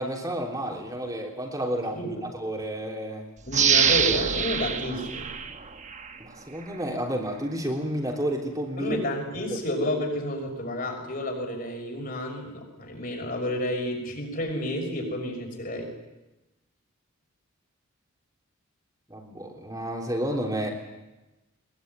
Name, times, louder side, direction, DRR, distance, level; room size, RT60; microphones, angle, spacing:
voice 1, 0.0-3.3 6.2-9.0 19.1-20.7, right 1 dB, 15° right, 0 dB, 3.3 m, -31 dB
voice 2, 3.5-5.3 8.8-15.9, left 1 dB, 40° left, 3 dB, 6.2 m, -30 dB
sound 1, 3.5-6.2 6.7-6.8, right 7 dB, 35° right, 1.2 m, -25 dB
22.0 x 21.5 x 9.5 m, 1.0 s
head